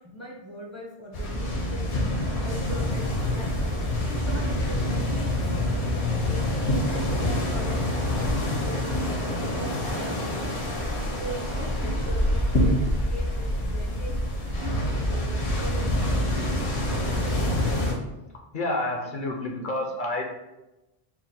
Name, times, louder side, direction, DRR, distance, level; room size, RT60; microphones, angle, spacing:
voice 1, 0.0-1.9 2.4-3.6 4.0-5.8 6.2-7.8 8.1-9.2 9.6-10.7 11.1-14.1 14.5-16.7, right 1 dB, 20° right, -3 dB, 0.5 m, -40 dB
sound 1, 1.1-17.9, left 1 dB, 80° left, 1.1 m, -26 dB
voice 2, 18.5-20.2, left 1 dB, 55° left, 0 dB, 0.7 m, -29 dB
4.6 x 2.1 x 3.6 m, 0.98 s
omnidirectional pair, 1.1 m